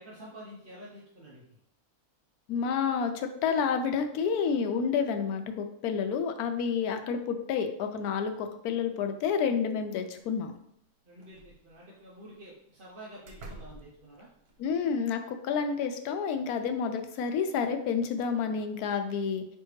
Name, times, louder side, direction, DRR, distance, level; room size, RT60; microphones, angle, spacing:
voice 1, 0.0-1.6 11.0-14.3, right 1 dB, 45° right, -5 dB, 0.7 m, -49 dB
voice 2, 2.5-10.5 14.6-19.6, left 6 dB, 80° left, 6 dB, 1.1 m, -29 dB
sound 1, 9.8-9.9 10.2-10.6 11.2-12.0 12.8-12.9 13.2-14.8, right 2 dB, 75° right, 1.5 m, -49 dB
5.2 x 3.3 x 3.1 m, 0.75 s
omnidirectional pair, 1.6 m